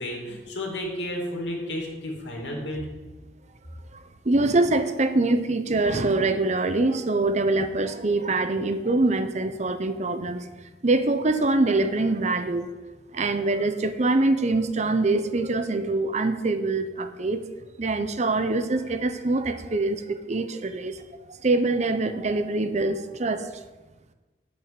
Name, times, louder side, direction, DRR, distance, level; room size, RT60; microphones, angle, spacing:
voice 1, 0.0-2.8, left 1 dB, 90° left, 0 dB, 2.8 m, -32 dB
voice 2, 3.9-10.5 10.8-12.7 13.1-17.4 17.8-21.0 21.4-23.5, right 2 dB, 40° right, 10 dB, 0.8 m, -24 dB
8.3 x 7.6 x 8.2 m, 1.2 s
head